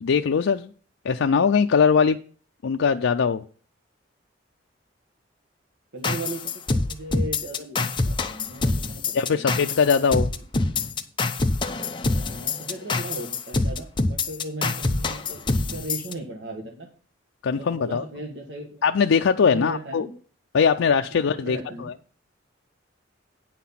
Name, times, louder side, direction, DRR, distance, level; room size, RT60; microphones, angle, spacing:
voice 1, 0.0-0.7 1.0-2.2 2.6-3.4 9.1-10.3 17.4-18.0 18.8-20.1 20.5-21.9, left 6 dB, 75° left, 5 dB, 0.4 m, -21 dB
voice 2, 5.9-9.8 12.2-16.9 17.5-18.9 19.4-20.2 21.1-21.9, right 1 dB, 60° right, 2 dB, 1.6 m, -37 dB
sound 1, 6.0-16.1, left 3 dB, 25° left, 0.6 m, -25 dB
9.3 x 5.9 x 5.8 m, 0.41 s
head